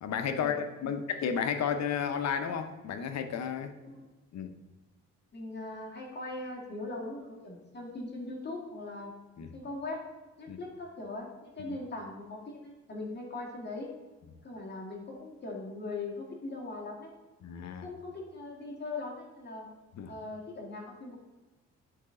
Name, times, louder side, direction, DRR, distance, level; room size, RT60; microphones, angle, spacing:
voice 1, 0.0-3.7 4.3-4.5 9.4-9.5 10.5-10.6 11.7-11.8 17.4-17.9 19.9-20.1, left 7 dB, 60° left, 8 dB, 0.8 m, -32 dB
voice 2, 5.3-9.1 9.5-10.0 10.4-13.9 14.4-17.1 17.8-19.7 20.1-21.2, left 2 dB, 35° left, -2 dB, 2.0 m, -40 dB
9.3 x 4.0 x 3.8 m, 1.2 s
cardioid pair, 90°, 30 cm